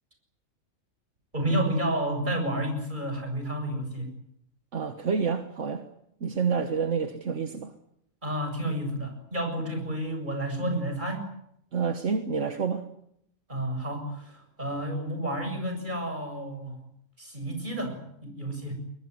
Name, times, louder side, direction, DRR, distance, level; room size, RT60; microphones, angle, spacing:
voice 1, 1.3-4.1 8.2-11.2 13.5-16.8 17.2-18.7, right 1 dB, 40° right, 4 dB, 7.7 m, -30 dB
voice 2, 4.7-5.8 6.2-7.7 11.7-12.8, right 5 dB, 70° right, 8 dB, 1.7 m, -28 dB
22.5 x 21.5 x 9.8 m, 0.75 s
omnidirectional pair, 1.3 m